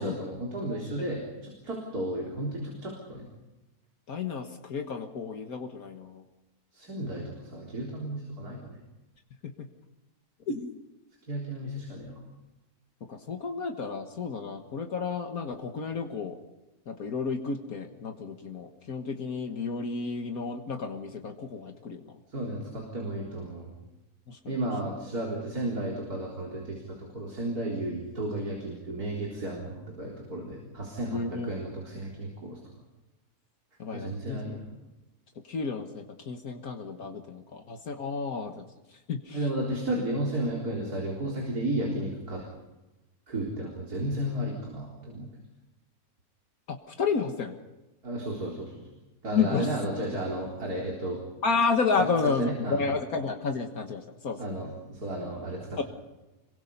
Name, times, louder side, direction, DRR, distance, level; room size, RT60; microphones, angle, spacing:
voice 1, 0.0-3.3 6.7-8.8 11.3-12.2 22.3-23.7 24.5-32.6 33.9-34.7 39.3-42.5 43.3-45.3 48.0-48.9 49.2-51.2 52.2-52.8 54.4-55.8, right 1 dB, 80° right, -2 dB, 4.4 m, -33 dB
voice 2, 4.1-6.2 9.4-9.5 10.5-10.8 13.1-16.4 16.9-22.1 24.3-24.6 31.1-31.5 33.8-34.4 35.4-39.4 46.7-47.6 49.3-49.7 51.4-54.6 55.8-55.9, left 5 dB, 70° left, 5 dB, 1.9 m, -31 dB
27.0 x 22.5 x 5.5 m, 1.1 s
omnidirectional pair, 1.6 m